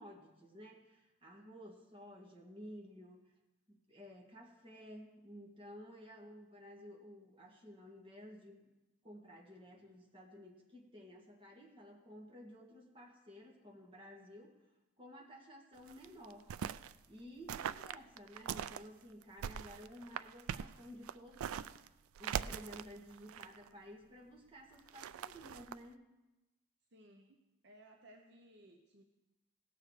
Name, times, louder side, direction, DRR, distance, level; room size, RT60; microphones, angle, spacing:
voice 1, 0.0-3.3 3.7-8.6 9.0-14.5 15.0-16.5 17.1-21.7 22.2-26.0, equal, 25° right, 0 dB, 1.7 m, -54 dB
sound 1, 15.8-17.0 17.5-18.8 19.2-21.9 22.2-23.7 24.7-25.8, right 8 dB, 85° right, 0.3 m, -42 dB
voice 2, 26.9-29.0, right 1 dB, 50° right, 3 dB, 0.8 m, -61 dB
17.5 x 6.8 x 4.8 m, 1.1 s
head